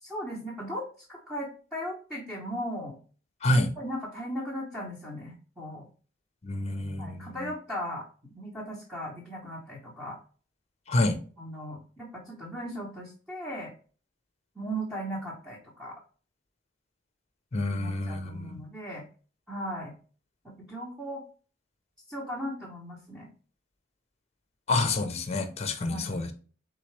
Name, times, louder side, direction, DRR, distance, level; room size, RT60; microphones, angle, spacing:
voice 1, 0.0-3.0 3.5-5.9 7.0-10.2 11.4-13.7 14.5-16.0 17.7-19.1 19.5-19.9 20.4-21.2 22.1-23.3 25.8-26.2, equal, 5° right, 1.0 m, -37 dB
voice 2, 6.4-7.4 10.9-11.2 17.5-18.6 24.7-26.3, left 2 dB, 35° left, 0.6 m, -28 dB
4.0 x 3.7 x 3.2 m
head